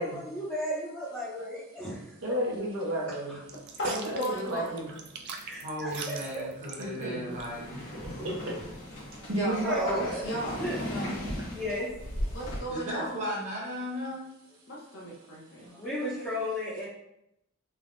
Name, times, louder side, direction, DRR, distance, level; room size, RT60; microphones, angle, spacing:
voice 1, 0.0-2.2 5.4-6.8 9.6-10.3 10.6-10.8 11.5-12.4 15.7-16.9, left 1 dB, 10° left, -11 dB, 0.6 m, -35 dB
voice 2, 2.2-3.4 3.9-4.9 6.8-7.2 8.2-8.5 9.3-10.1, right 1 dB, 80° right, -2 dB, 0.7 m, -31 dB
sound 1, 3.4-9.7, right 5 dB, 55° right, 0.3 m, -45 dB
voice 3, 4.2-4.8 9.3-9.8 10.2-11.2 12.3-13.2 14.7-15.7, right 1 dB, 60° left, -4 dB, 0.7 m, -36 dB
voice 4, 5.6-7.8 12.7-14.2, equal, 35° right, -5 dB, 0.9 m, -35 dB
sound 2, 7.3-12.6, left 1 dB, 80° left, 1.0 m, -37 dB
3.3 x 2.0 x 2.5 m, 0.81 s
head